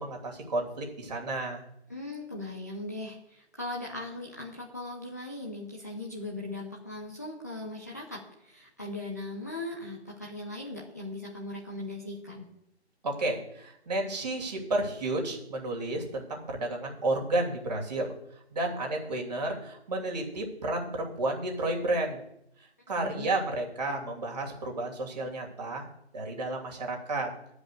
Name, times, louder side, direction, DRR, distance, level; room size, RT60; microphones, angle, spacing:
voice 1, 0.0-1.6 13.0-18.1 18.5-22.2 22.9-25.9 26.1-27.3, right 2 dB, 40° right, 0 dB, 2.9 m, -31 dB
voice 2, 1.9-12.5 23.0-23.3, left 2 dB, 15° left, -3 dB, 0.7 m, -39 dB
12.5 x 5.1 x 8.3 m, 0.76 s
figure-of-eight pair, 165°, 34 cm